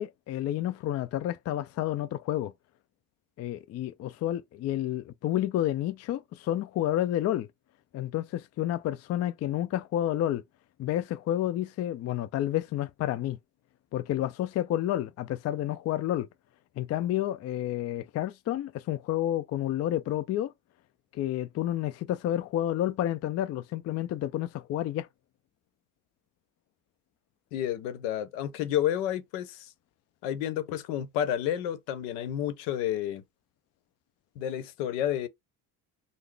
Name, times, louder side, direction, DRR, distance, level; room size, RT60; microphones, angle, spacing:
voice 1, 0.0-2.5 3.4-7.5 7.9-10.4 10.8-13.4 13.9-16.3 16.8-20.5 21.1-25.1, left 12 dB, 35° left, 0.4 m, -30 dB
voice 2, 27.5-29.7 30.2-33.2 34.4-35.3, left 11 dB, 80° left, 0.8 m, -30 dB
3.7 x 2.0 x 3.2 m
supercardioid pair, 75°, 44 cm